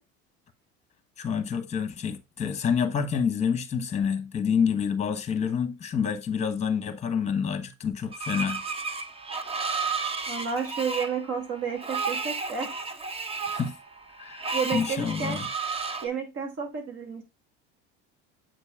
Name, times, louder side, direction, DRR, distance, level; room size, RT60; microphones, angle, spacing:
voice 1, 1.2-8.6 13.5-13.8 14.2-15.5, left 7 dB, 25° left, 1.2 m, -28 dB
Screech, 8.1-16.1, right 4 dB, 20° right, 0.8 m, -32 dB
voice 2, 10.3-12.7 14.5-15.4 16.0-17.2, right 6 dB, 50° right, 2.7 m, -31 dB
7.6 x 5.2 x 2.4 m
supercardioid pair, 110°, 30 cm